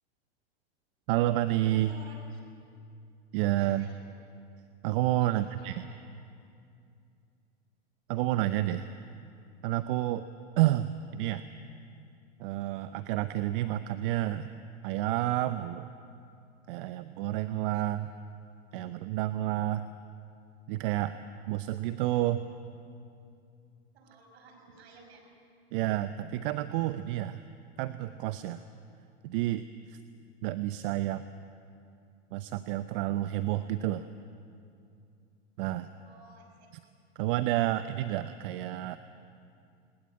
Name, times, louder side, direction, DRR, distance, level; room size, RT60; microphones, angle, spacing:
voice 1, 1.1-1.9 3.3-3.9 4.8-5.9 8.1-8.8 9.6-10.2 10.6-11.5 12.4-14.5 14.8-15.9 16.7-18.1 18.7-19.9 20.7-21.1 21.5-22.4 25.7-27.4 27.8-28.6 29.2-30.0 30.4-31.3 32.3-34.1 35.6-35.9 37.2-39.0, right 14 dB, 55° right, 12 dB, 0.8 m, -30 dB
voice 2, 1.7-2.4 3.5-4.1 5.2-6.0 17.7-17.8 23.9-25.2 35.9-36.6, right 3 dB, 70° right, 2 dB, 6.0 m, -54 dB
20.5 x 20.0 x 8.7 m, 2.5 s
hypercardioid pair, 115°, 33 cm